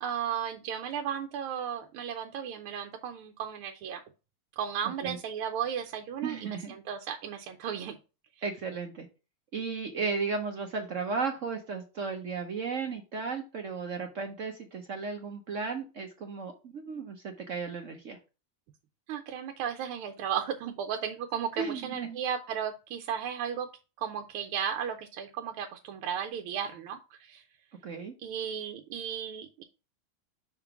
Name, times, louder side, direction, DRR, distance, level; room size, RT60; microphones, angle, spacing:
voice 1, 0.0-4.0 4.6-7.9 19.1-23.7 24.0-27.4 28.2-29.6, right 8 dB, 90° right, 4 dB, 1.5 m, -35 dB
voice 2, 6.2-6.7 8.4-9.1 9.5-18.2 21.6-22.2 27.8-28.1, right 5 dB, 60° right, 4 dB, 0.8 m, -35 dB
5.7 x 3.7 x 5.8 m, 0.32 s
omnidirectional pair, 2.3 m